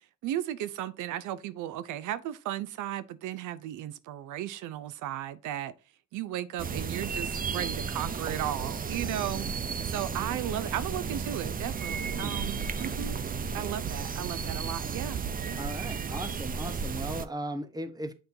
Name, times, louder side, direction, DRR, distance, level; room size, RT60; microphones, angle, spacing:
voice 1, 0.2-5.7 6.1-13.2 13.5-15.6, right 12 dB, 80° right, 0.5 m, -35 dB
sound 1, 6.6-17.3, right 5 dB, 30° right, 0.5 m, -33 dB
voice 2, 15.6-18.1, right 1 dB, 15° right, 1.0 m, -37 dB
6.8 x 5.6 x 2.7 m
cardioid pair, 90°, 30 cm